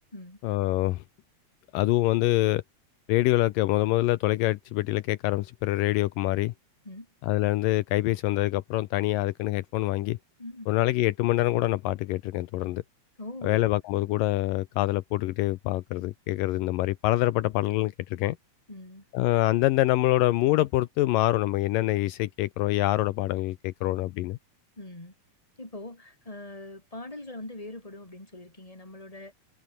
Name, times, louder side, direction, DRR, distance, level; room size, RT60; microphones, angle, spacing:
voice 1, 0.4-1.0 1.7-2.6 3.1-6.5 7.2-10.2 10.7-12.8 13.4-18.4 19.1-24.4, left 17 dB, 80° left, 2.3 m, -25 dB
voice 2, 13.2-13.6 18.7-19.1 24.8-25.1 25.6-29.3, left 2 dB, 10° left, 4.4 m, -42 dB
omnidirectional pair, 4.1 m